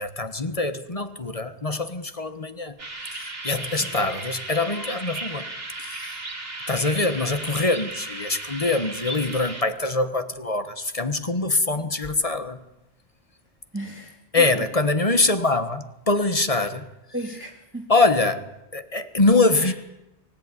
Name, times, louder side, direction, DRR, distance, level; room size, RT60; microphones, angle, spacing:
voice 1, 0.0-2.8 3.1-5.5 5.8-6.2 6.7-12.6 14.3-16.9 17.9-19.7, left 2 dB, 35° left, 1.4 m, -24 dB
sound 1, 2.8-9.6, right 2 dB, 65° right, 2.9 m, -35 dB
voice 2, 13.7-14.6 17.1-17.9 19.5-19.7, right 1 dB, 10° right, 2.2 m, -35 dB
24.0 x 17.5 x 9.9 m
omnidirectional pair, 1.1 m